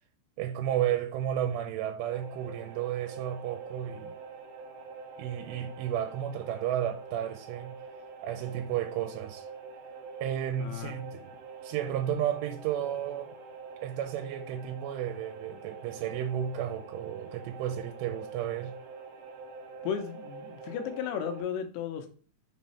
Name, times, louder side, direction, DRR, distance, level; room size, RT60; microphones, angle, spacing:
voice 1, 0.4-4.2 5.2-7.8 8.2-9.5 10.2-11.3 11.6-13.4 13.8-18.7, right 10 dB, 85° right, 2.7 m, -33 dB
sound 1, 2.0-21.4, right 4 dB, 60° right, 2.7 m, -45 dB
voice 2, 10.6-10.9 19.8-22.1, left 8 dB, 80° left, 2.7 m, -34 dB
6.4 x 3.5 x 4.2 m
omnidirectional pair, 4.9 m